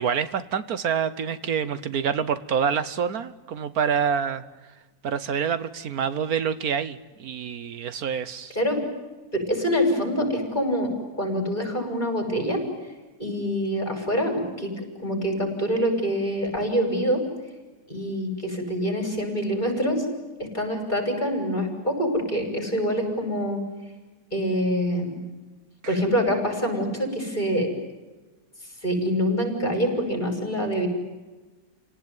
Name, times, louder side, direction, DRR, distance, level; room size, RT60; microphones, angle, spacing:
voice 1, 0.0-4.4 5.0-8.5 25.8-26.0, right 7 dB, 75° right, 14 dB, 1.5 m, -27 dB
voice 2, 9.3-12.6 13.2-17.2 17.9-20.0 20.4-23.6 24.3-25.2 25.9-27.7 28.8-30.9, equal, 30° left, 4 dB, 6.7 m, -25 dB
29.0 x 18.5 x 9.6 m, 1.2 s
omnidirectional pair, 1.6 m